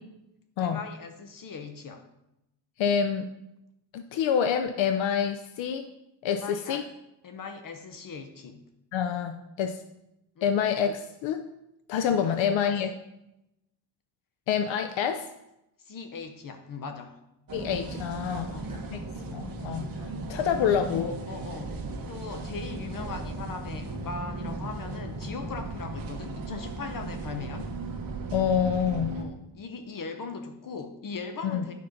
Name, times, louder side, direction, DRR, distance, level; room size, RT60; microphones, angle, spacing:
voice 1, 0.6-2.0 6.3-6.8 7.2-8.6 10.4-10.5 12.2-12.8 15.8-17.2 18.3-18.8 20.3-20.7 21.3-27.7 29.1-31.7, left 4 dB, 45° left, 6 dB, 0.8 m, -40 dB
voice 2, 2.8-3.3 3.9-5.9 6.2-6.8 8.9-9.8 10.4-11.4 11.9-12.9 14.5-15.3 17.5-18.5 18.9-19.0 19.3-21.2 28.3-29.2 31.4-31.7, left 7 dB, 85° left, 7 dB, 0.7 m, -27 dB
sound 1, 17.5-29.2, right 2 dB, 50° right, 1.3 m, -36 dB
9.3 x 5.5 x 5.2 m, 0.88 s
cardioid pair, 145°, 44 cm